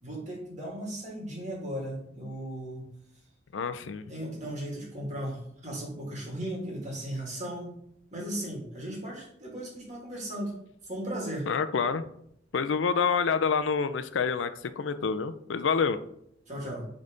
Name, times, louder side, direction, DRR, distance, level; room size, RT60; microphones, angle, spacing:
voice 1, 0.0-2.9 4.1-7.7 8.1-10.5 10.8-11.5 16.5-16.8, right 1 dB, 40° right, -2 dB, 2.2 m, -36 dB
voice 2, 3.5-4.0 11.5-12.1 12.5-14.5 14.8-16.0, left 5 dB, 70° left, 11 dB, 0.4 m, -27 dB
5.4 x 3.9 x 5.0 m, 0.73 s
head